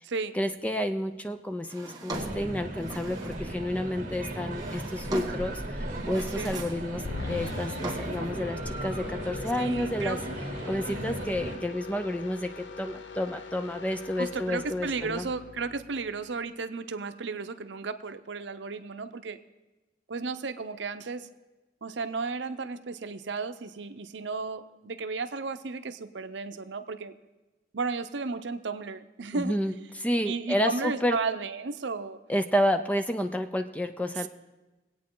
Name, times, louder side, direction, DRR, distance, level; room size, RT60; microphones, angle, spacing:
voice 1, 0.3-10.2 10.7-15.3 29.3-29.7 30.0-31.2 32.3-34.3, equal, 10° left, 8 dB, 0.5 m, -30 dB
Drawer open or close, 1.6-3.5 4.3-5.6 5.9-6.9 7.2-8.3, right 2 dB, 20° right, 1.5 m, -40 dB
sound 1, 2.1-11.6, right 1 dB, 45° right, 1.9 m, -36 dB
sound 2, 7.0-16.4, left 4 dB, 80° left, 0.6 m, -42 dB
voice 2, 9.6-10.2 10.9-11.2 14.2-19.4 20.1-21.3 21.8-27.1 27.7-29.6 30.2-32.2, right 4 dB, 80° right, 10 dB, 0.6 m, -34 dB
21.5 x 8.7 x 3.8 m, 1.1 s
head